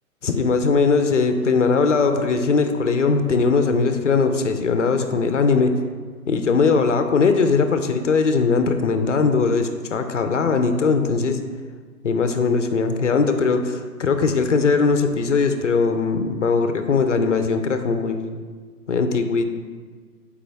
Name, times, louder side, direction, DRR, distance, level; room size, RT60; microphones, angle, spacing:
voice 1, 0.2-5.7 6.3-11.4 12.0-18.4 18.9-19.5, left 4 dB, 50° left, 7 dB, 0.6 m, -20 dB
7.2 x 4.9 x 3.4 m, 1.5 s
hypercardioid pair, 175°, 46 cm